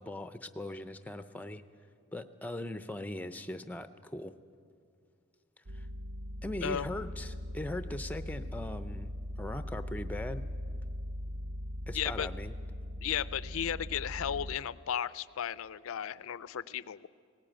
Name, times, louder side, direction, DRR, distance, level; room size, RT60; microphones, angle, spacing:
voice 1, 0.0-1.6 2.1-4.3 5.7-5.9 6.4-9.1 9.4-10.5 11.9-12.5, left 1 dB, 5° left, 10 dB, 0.5 m, -40 dB
sound 1, 5.7-14.6, left 1 dB, 65° right, 0.7 m, -40 dB
voice 2, 11.9-12.3 13.0-17.1, left 9 dB, 70° left, 18 dB, 0.4 m, -35 dB
18.5 x 17.5 x 8.9 m, 2.3 s
head